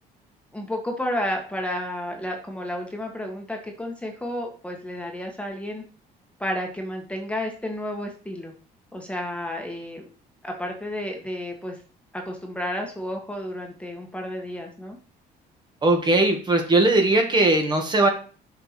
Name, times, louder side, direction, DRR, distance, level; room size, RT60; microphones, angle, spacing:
voice 1, 0.5-5.8 6.4-8.5 8.9-10.1 10.4-11.8 12.1-15.0, left 1 dB, 5° left, 2 dB, 1.7 m, -31 dB
voice 2, 15.8-18.1, right 2 dB, 25° right, 3 dB, 2.0 m, -19 dB
6.8 x 4.8 x 6.0 m, 0.39 s
cardioid pair, 110°, 17 cm